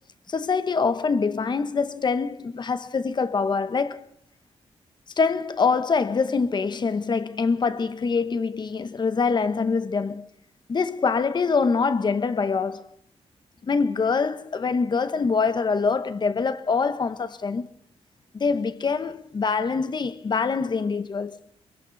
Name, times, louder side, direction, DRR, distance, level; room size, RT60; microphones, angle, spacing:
voice 1, 0.3-4.0 5.2-10.3 10.7-12.9 13.6-17.7 18.3-21.4, left 5 dB, 40° left, 1.3 m, -24 dB
28.0 x 24.5 x 4.2 m
wide cardioid pair, 120°, 11 cm